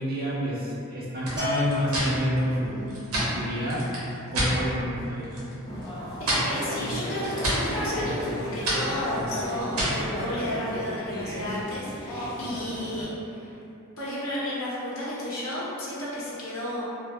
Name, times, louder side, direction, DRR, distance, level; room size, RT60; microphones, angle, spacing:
voice 1, 0.0-2.9 3.2-3.8 4.3-5.3 11.2-11.4 12.4-12.6, equal, 45° right, -7 dB, 0.6 m, -29 dB
sound 1, 1.2-4.6 4.9-5.5 5.8-10.1, right 1 dB, 85° right, 0.7 m, -30 dB
Bell, 1.4-2.7, left 3 dB, 20° right, 1.1 m, -32 dB
sound 2, 5.7-13.0, left 1 dB, 20° left, 0.4 m, -34 dB
voice 2, 6.2-13.6 14.0-16.8, left 1 dB, 70° left, -8 dB, 0.7 m, -33 dB
2.2 x 2.1 x 2.7 m, 2.8 s
head